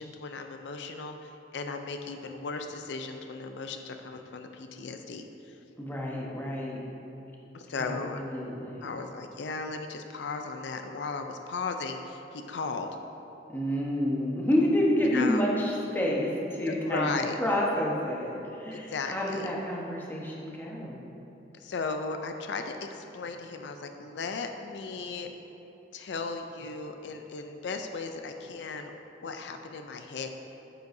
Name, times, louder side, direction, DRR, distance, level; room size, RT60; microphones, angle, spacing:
voice 1, 0.0-5.6 7.5-8.2 8.8-12.9 15.1-15.4 16.7-17.4 18.7-19.5 21.5-25.3 25.9-28.9 29.2-30.3, left 4 dB, 80° left, 6 dB, 0.4 m, -36 dB
voice 2, 5.8-6.8 7.8-8.9 13.5-17.1 17.4-21.0, left 1 dB, 10° left, -3 dB, 1.0 m, -29 dB
9.4 x 7.9 x 2.7 m, 3.0 s
head